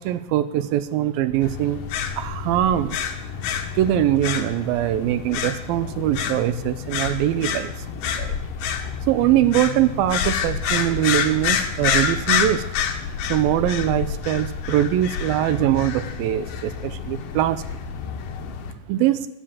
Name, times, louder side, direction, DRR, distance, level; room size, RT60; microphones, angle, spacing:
voice 1, 0.0-1.8 2.2-3.0 3.8-7.7 8.2-8.3 9.1-12.6 13.3-17.6 18.9-19.3, right 12 dB, 80° right, 13 dB, 2.4 m, -22 dB
sound 1, 1.4-18.7, left 7 dB, 70° left, 2.6 m, -28 dB
16.0 x 10.0 x 7.3 m, 0.87 s
omnidirectional pair, 4.3 m